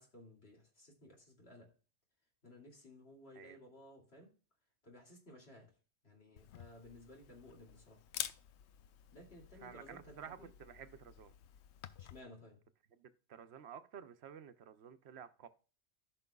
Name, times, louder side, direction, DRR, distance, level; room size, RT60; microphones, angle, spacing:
voice 1, 0.0-1.7 2.4-4.3 4.8-5.7 6.0-8.0 9.1-10.5 12.0-12.6, left 1 dB, 65° left, 2.8 m, -57 dB
Camera, 6.4-12.2, left 10 dB, 85° left, 0.9 m, -49 dB
voice 2, 9.6-11.3 12.9-15.5, right 8 dB, 70° right, 0.9 m, -52 dB
14.5 x 5.9 x 2.3 m
omnidirectional pair, 1.1 m